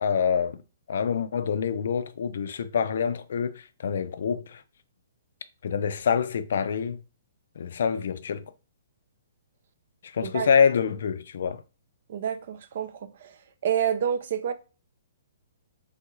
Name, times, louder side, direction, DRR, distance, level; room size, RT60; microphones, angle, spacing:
voice 1, 0.0-0.6 0.9-4.6 5.6-7.0 7.6-8.4 10.1-11.6, left 6 dB, 65° left, 0.3 m, -26 dB
voice 2, 12.1-12.9 13.2-13.4 13.6-14.5, right 8 dB, 55° right, 0.4 m, -28 dB
3.4 x 2.3 x 3.0 m
hypercardioid pair, 160°, 0 cm